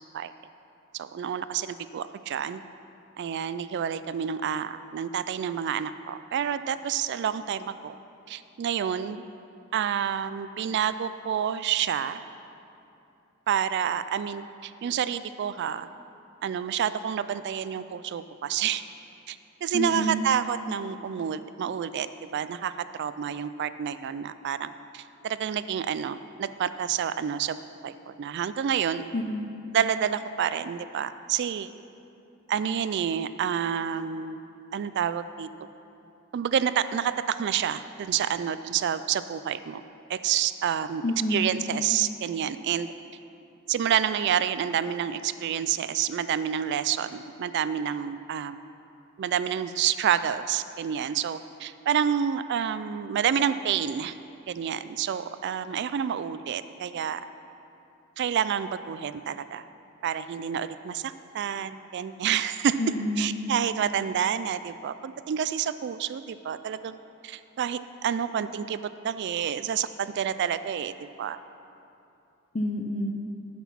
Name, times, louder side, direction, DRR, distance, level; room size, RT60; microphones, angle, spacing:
voice 1, 0.9-2.6 3.2-7.9 8.3-9.2 9.7-12.2 13.5-15.9 16.4-18.8 19.3-22.7 23.0-29.1 29.7-31.7 32.5-34.4 34.7-35.5 36.3-39.8 40.1-41.0 41.3-42.9 43.7-48.6 49.2-54.2 54.5-57.2 58.2-59.6 60.0-62.8 63.2-67.0 67.2-71.4, right 8 dB, 55° right, 13 dB, 0.3 m, -29 dB
voice 2, 19.7-20.3 29.1-29.5 41.0-41.5 62.8-63.3 72.5-73.1, left 1 dB, 35° left, 3 dB, 0.6 m, -28 dB
14.0 x 6.1 x 5.6 m, 2.7 s
head